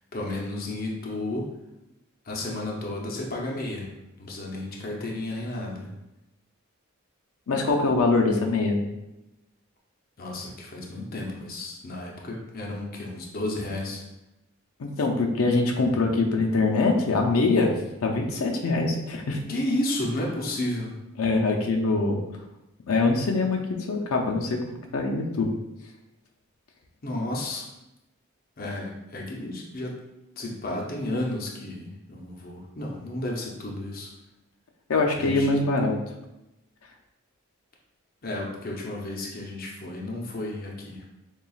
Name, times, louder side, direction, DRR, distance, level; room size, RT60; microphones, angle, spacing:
voice 1, 0.1-1.5 2.3-3.9 4.2-5.9 10.2-14.0 19.5-20.9 27.0-27.6 28.6-29.9 30.4-34.1 35.2-35.6 38.2-41.0, left 1 dB, 45° left, -2 dB, 0.7 m, -32 dB
voice 2, 7.5-8.8 14.8-17.7 18.0-19.4 21.2-22.2 22.9-25.5 34.9-36.0, left 3 dB, 85° left, 1 dB, 0.5 m, -23 dB
6.8 x 2.3 x 2.4 m, 0.93 s
head